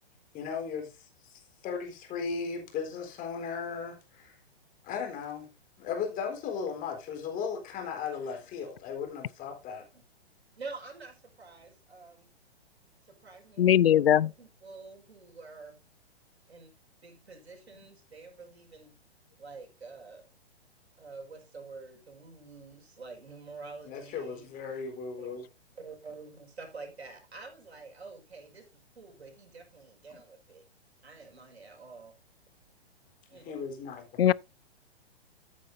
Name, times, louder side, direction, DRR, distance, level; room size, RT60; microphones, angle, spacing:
voice 1, 0.3-4.3 4.8-5.5 5.8-9.9 23.8-25.5 33.3-34.3, left 6 dB, 25° left, 3.9 m, -36 dB
voice 2, 10.6-12.3 13.0-15.8 16.5-16.7 17.0-19.0 19.4-20.2 21.0-24.5 25.2-25.3 25.7-30.6 31.0-32.1 33.3-33.6, right 4 dB, 75° right, 5.4 m, -47 dB
voice 3, 13.6-14.3 34.2-34.3, left 11 dB, 65° left, 0.5 m, -20 dB
13.5 x 9.3 x 2.6 m
figure-of-eight pair, 120°, 32 cm